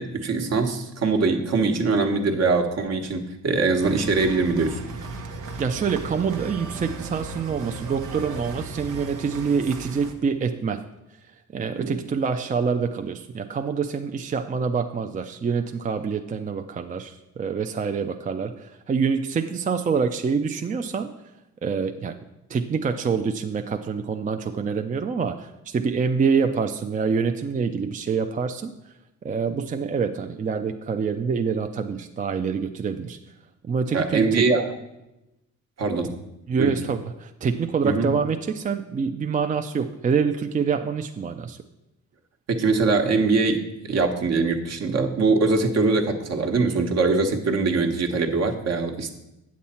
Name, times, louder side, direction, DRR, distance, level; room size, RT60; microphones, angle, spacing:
voice 1, 0.0-4.8 11.8-11.9 33.9-34.7 35.8-36.2 36.6-36.7 37.8-38.1 42.5-43.6 43.9-49.1, right 4 dB, 55° right, 4 dB, 1.1 m, -22 dB
sound 1, 3.8-10.1, right 3 dB, 90° right, 1.0 m, -36 dB
voice 2, 5.6-10.9 11.5-21.1 21.6-22.2 22.5-28.9 29.2-33.2 33.6-34.5 36.5-41.6, right 5 dB, 25° right, 6 dB, 0.4 m, -26 dB
8.4 x 7.2 x 4.3 m, 0.91 s
cardioid pair, 90°, 30 cm